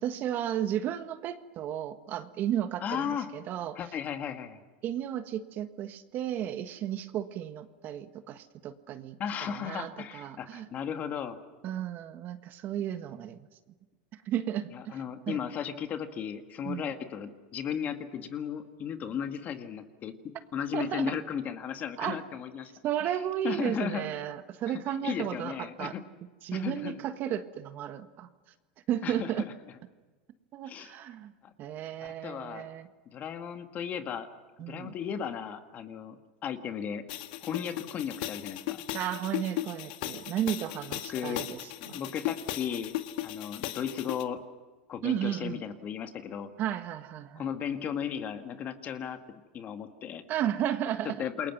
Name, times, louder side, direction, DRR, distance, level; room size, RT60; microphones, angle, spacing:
voice 1, 0.0-3.8 4.8-9.2 9.4-10.7 11.6-13.4 14.3-15.0 15.3-15.4 16.6-16.9 20.7-21.1 22.0-22.2 22.8-25.9 26.4-28.3 28.9-29.4 30.5-31.3 31.6-32.9 34.6-34.9 38.9-41.6 41.9-42.0 45.0-45.6 46.6-47.5 50.3-51.2, right 11 dB, 40° right, 10 dB, 1.5 m, -33 dB
voice 2, 2.8-3.3 3.7-4.6 9.2-11.4 14.7-20.1 20.5-22.7 23.0-23.1 23.4-24.1 24.7-26.0 26.5-27.0 29.0-29.5 30.6-31.0 31.4-31.5 32.0-32.6 33.1-34.3 34.7-37.0 37.4-38.8 41.1-41.4 41.8-42.9 43.2-44.4 44.9-46.5 47.4-49.2 49.5-50.2 51.2-51.5, left 8 dB, 35° left, 7 dB, 1.9 m, -35 dB
sound 1, 37.1-44.2, left 14 dB, 65° left, 1.6 m, -37 dB
28.5 x 22.0 x 6.2 m, 1.3 s
supercardioid pair, 130°, 5 cm